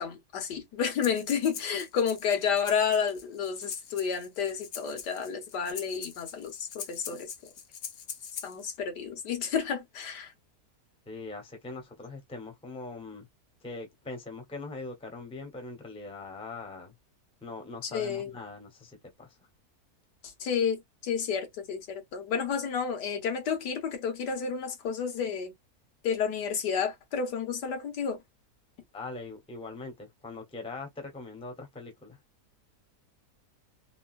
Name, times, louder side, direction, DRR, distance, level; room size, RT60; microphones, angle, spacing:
voice 1, 0.0-7.3 8.4-10.3 17.8-18.4 20.2-25.5 26.0-28.2, left 6 dB, 90° left, 1.7 m, -31 dB
Breathing, 0.9-8.7, left 7 dB, 65° left, 0.6 m, -44 dB
voice 2, 11.1-13.3 13.6-16.9 17.4-19.4 28.9-32.2, left 3 dB, 5° left, 0.7 m, -41 dB
3.7 x 2.3 x 2.4 m
omnidirectional pair, 1.7 m